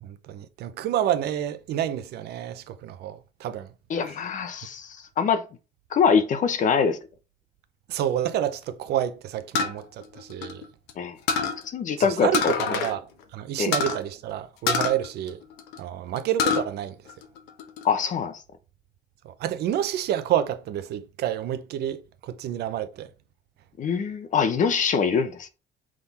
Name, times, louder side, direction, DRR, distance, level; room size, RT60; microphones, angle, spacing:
voice 1, 0.0-3.7 7.9-10.6 12.0-15.4 15.8-17.0 19.2-23.1, right 11 dB, 75° right, 0.8 m, -29 dB
voice 2, 3.9-5.4 5.9-7.0 11.0-11.2 11.6-12.8 13.6-13.7 17.8-18.4 23.8-25.5, left 6 dB, 50° left, 0.9 m, -24 dB
sound 1, 9.5-10.9 11.3-11.6 12.3-13.0 13.2-13.3 13.7-14.0 14.7-15.8 16.2-16.7 17.1-17.8, left 6 dB, 90° left, 1.0 m, -26 dB
6.1 x 3.8 x 4.2 m
cardioid pair, 110°, 17 cm